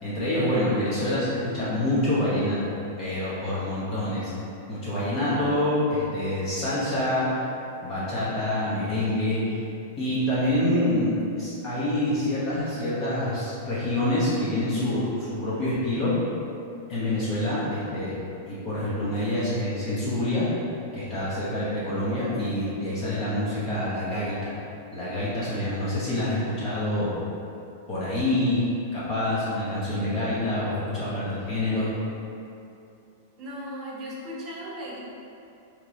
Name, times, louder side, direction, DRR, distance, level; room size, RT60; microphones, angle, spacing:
voice 1, 0.0-2.7 3.0-4.3 4.7-7.2 7.8-9.6 10.0-16.1 16.9-18.2 18.5-20.5 20.9-24.5 24.9-27.2 27.9-28.6 28.9-31.9, left 1 dB, 30° left, -10 dB, 1.0 m, -26 dB
voice 2, 33.4-35.0, equal, 25° right, -5 dB, 0.9 m, -37 dB
3.2 x 3.1 x 3.9 m, 2.7 s
supercardioid pair, 145°, 0 cm